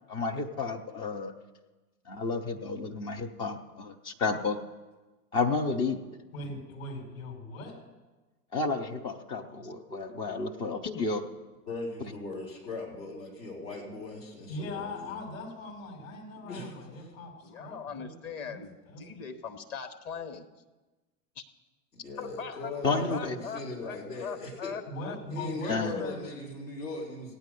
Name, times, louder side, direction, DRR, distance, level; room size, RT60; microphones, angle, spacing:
voice 1, 0.1-1.3 2.1-4.6 5.3-6.0 8.5-11.2 22.8-23.4 25.7-26.0, left 4 dB, 10° left, 3 dB, 0.3 m, -31 dB
voice 2, 6.3-7.7 14.5-18.1 18.4-19.0 24.9-26.2, left 2 dB, 60° left, 0 dB, 4.7 m, -40 dB
voice 3, 10.7-11.1 17.4-20.5 21.4-21.5 22.2-25.2, left 6 dB, 30° left, 6 dB, 1.0 m, -40 dB
voice 4, 11.7-15.2 16.4-17.1 21.9-24.8 25.2-27.4, left 3 dB, 80° left, -3 dB, 4.3 m, -39 dB
15.5 x 9.2 x 5.3 m, 1.2 s
figure-of-eight pair, 95°, 47 cm